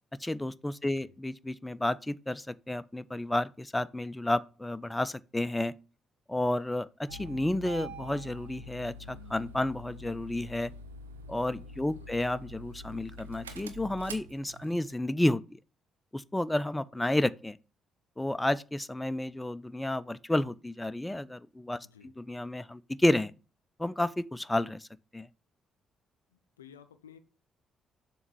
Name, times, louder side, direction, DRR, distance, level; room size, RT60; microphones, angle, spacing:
voice 1, 0.2-5.7 6.3-10.7 11.3-15.6 16.1-17.6 18.2-21.8 22.2-23.3 23.8-24.9 25.1-25.3, left 1 dB, 10° left, 0.4 m, -31 dB
voice 2, 0.8-1.1 11.8-12.2 21.8-22.1 26.3-27.2, left 8 dB, 85° left, 0.4 m, -55 dB
Engine starting, 7.1-14.9, right 1 dB, 85° right, 0.5 m, -46 dB
7.1 x 3.0 x 6.0 m
figure-of-eight pair, 45°, 0 cm